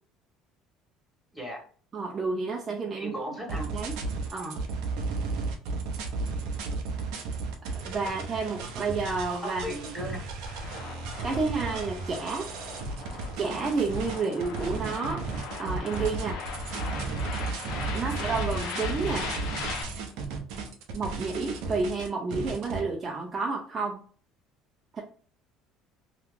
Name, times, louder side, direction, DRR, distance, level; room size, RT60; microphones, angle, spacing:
voice 1, 1.9-3.2 3.7-4.0 4.3-4.6 7.6-9.6 11.2-12.5 13.4-15.2 15.6-16.4 17.9-19.3 20.9-24.0 24.9-25.0, right 4 dB, 35° right, 0 dB, 0.6 m, -30 dB
voice 2, 2.9-3.7 9.4-10.2 17.9-18.1, equal, 5° left, -1 dB, 1.6 m, -36 dB
sound 1, 3.5-22.8, right 3 dB, 75° right, 0.8 m, -34 dB
sound 2, 10.5-19.8, left 5 dB, 70° left, 0.9 m, -39 dB
2.9 x 2.5 x 3.5 m, 0.43 s
supercardioid pair, 100°, 0 cm